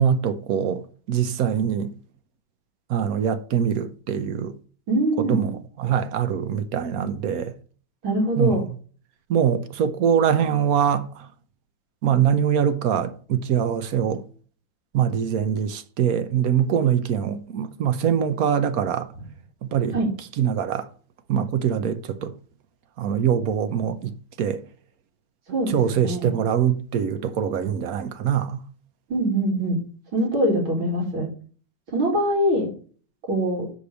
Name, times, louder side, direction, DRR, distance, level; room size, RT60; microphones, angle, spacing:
voice 1, 0.0-1.9 2.9-4.6 5.2-7.5 8.4-8.6 9.3-11.3 12.0-14.2 14.9-19.1 19.6-20.0 20.4-20.9 21.3-22.3 23.0-24.6 25.7-28.6, right 8 dB, 65° right, 0.9 m, -23 dB
voice 2, 4.9-5.4 8.0-8.6 19.9-20.1 25.5-25.8 26.0-26.3 29.1-29.8 30.1-31.3 31.9-32.7 33.3-33.7, right 1 dB, 80° right, 3.1 m, -23 dB
6.5 x 5.2 x 6.8 m
omnidirectional pair, 2.2 m